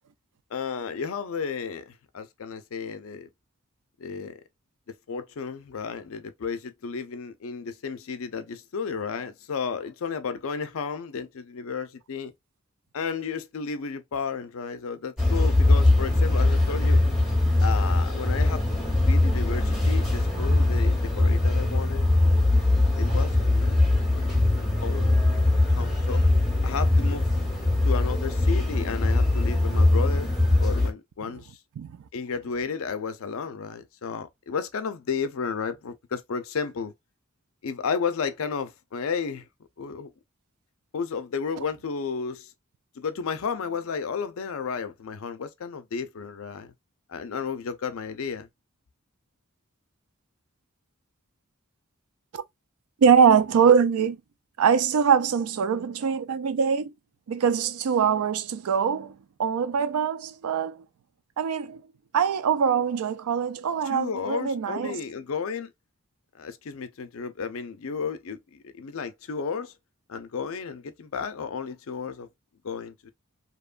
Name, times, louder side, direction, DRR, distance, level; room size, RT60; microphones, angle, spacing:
voice 1, 0.5-3.3 4.0-4.4 5.1-12.3 12.9-17.0 17.6-18.6 19.0-22.6 22.9-26.2 26.6-27.3 27.8-30.3 30.6-31.6 32.1-36.9 37.6-39.5 39.8-40.1 40.9-42.5 43.0-46.7 47.1-48.5 63.8-65.7 66.4-69.7 70.1-72.3 72.6-73.1, left 5 dB, 70° left, 0.5 m, -33 dB
sound 1, 15.2-30.9, left 2 dB, ahead, 0.9 m, -21 dB
voice 2, 53.0-54.2 54.6-56.9 57.3-60.8 61.4-61.8 62.1-65.0, right 7 dB, 80° right, 0.4 m, -23 dB
2.9 x 2.2 x 2.3 m
head